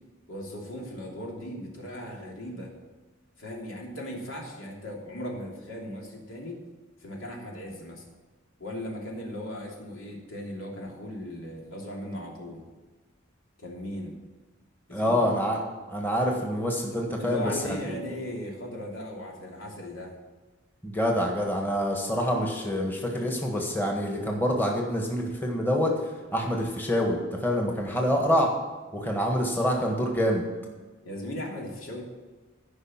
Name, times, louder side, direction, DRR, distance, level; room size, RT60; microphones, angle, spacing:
voice 1, 0.3-2.7 3.4-6.6 7.0-8.0 8.6-12.6 13.6-14.1 14.9-15.4 17.2-20.1 31.0-32.0, equal, 80° left, -1 dB, 3.0 m, -37 dB
voice 2, 14.9-15.6 15.9-17.8 20.8-25.9 26.3-28.5 28.9-30.4, equal, 10° left, 0 dB, 1.5 m, -26 dB
15.0 x 5.5 x 7.3 m, 1.3 s
head